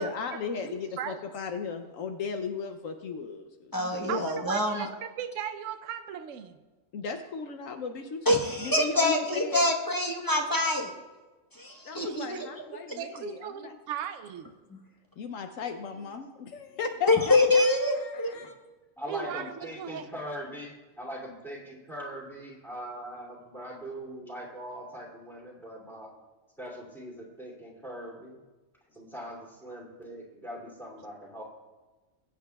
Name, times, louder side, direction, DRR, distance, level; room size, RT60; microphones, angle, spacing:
voice 1, 0.0-4.2 6.9-9.6 11.8-13.8 15.2-18.6, left 5 dB, 75° left, 5 dB, 1.1 m, -36 dB
voice 2, 0.6-1.2 4.1-6.6 12.0-12.4 13.0-14.5 19.1-20.1, right 9 dB, 70° right, 8 dB, 1.0 m, -37 dB
voice 3, 3.7-4.9 8.3-10.9 11.5-12.4 17.1-18.3, left 2 dB, 15° left, 1 dB, 1.1 m, -25 dB
voice 4, 19.0-26.1 26.6-28.4 28.9-31.4, equal, ahead, -3 dB, 2.6 m, -41 dB
21.5 x 8.7 x 2.3 m, 1.2 s
omnidirectional pair, 1.4 m